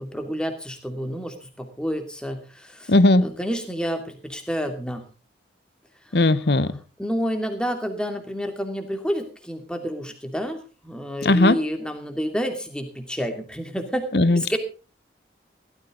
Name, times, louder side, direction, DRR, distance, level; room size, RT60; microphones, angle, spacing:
voice 1, 0.0-2.9 3.2-5.0 6.1-6.2 7.0-14.6, equal, 5° left, 5 dB, 2.6 m, -29 dB
voice 2, 2.9-3.2 6.1-6.7 11.2-11.6 14.1-14.6, left 2 dB, 60° left, 16 dB, 1.0 m, -17 dB
16.5 x 14.0 x 3.9 m, 0.34 s
head